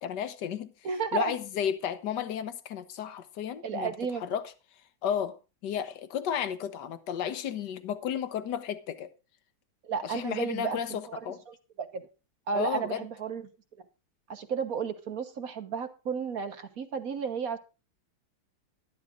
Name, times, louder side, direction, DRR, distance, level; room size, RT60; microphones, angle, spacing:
voice 1, 0.0-0.7 1.1-3.9 4.2-4.4 5.0-5.4 5.6-9.1 10.0-11.4 12.5-13.0, left 9 dB, 65° left, 1.6 m, -33 dB
voice 2, 0.8-1.4 3.6-4.2 9.8-12.1 12.5-13.5 14.3-17.6, right 6 dB, 50° right, 1.4 m, -33 dB
12.0 x 12.0 x 3.8 m
omnidirectional pair, 2.1 m